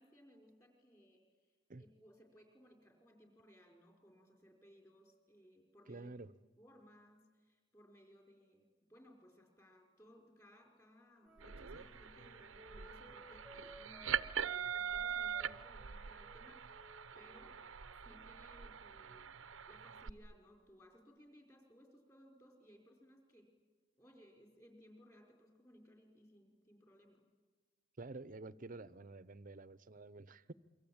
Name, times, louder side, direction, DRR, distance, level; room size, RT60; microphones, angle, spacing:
voice 1, 0.0-1.5 1.8-6.1 6.6-16.8 17.1-17.6 18.0-19.4 19.7-23.5 24.0-27.3, equal, 15° left, 5.0 m, -63 dB
voice 2, 5.9-6.3 28.0-30.5, right 3 dB, 45° right, 0.7 m, -50 dB
Wind instrument woodwind instrument, 11.2-18.7, right 1 dB, ahead, 1.4 m, -61 dB
sound 1, 11.4-20.1, right 8 dB, 85° right, 0.7 m, -43 dB
28.0 x 23.5 x 8.7 m
head